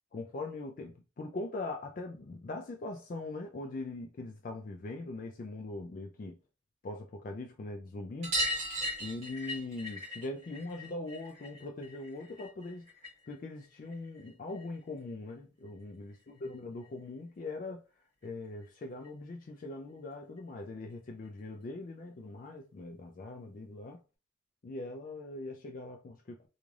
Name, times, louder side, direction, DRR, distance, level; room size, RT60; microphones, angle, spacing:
voice 1, 0.1-6.4 6.8-8.4 9.0-12.9 13.3-17.8 18.2-24.0 24.6-26.5, left 2 dB, 40° left, 0.3 m, -41 dB
sound 1, 8.2-13.3 13.6-14.8 16.1-16.2 16.4-16.5 16.8-16.9 18.2-18.3 18.6-18.7 19.0-19.1 20.4-20.5 21.2-21.3, equal, 30° right, 1.2 m, -38 dB
3.2 x 2.4 x 2.4 m
head